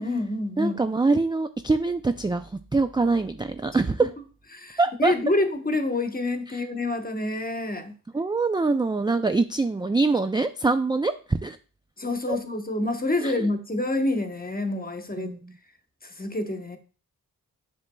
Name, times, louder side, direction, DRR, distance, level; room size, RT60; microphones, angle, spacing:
voice 1, 0.0-0.8 4.5-7.9 12.0-15.3 16.0-16.8, left 2 dB, 20° left, 1.1 m, -27 dB
voice 2, 0.6-4.1 4.8-5.1 6.5-6.6 8.1-11.6 12.3-12.4 13.2-13.5 15.2-15.5, right 3 dB, 10° right, 0.4 m, -24 dB
7.4 x 5.9 x 2.3 m
cardioid pair, 45°, 39 cm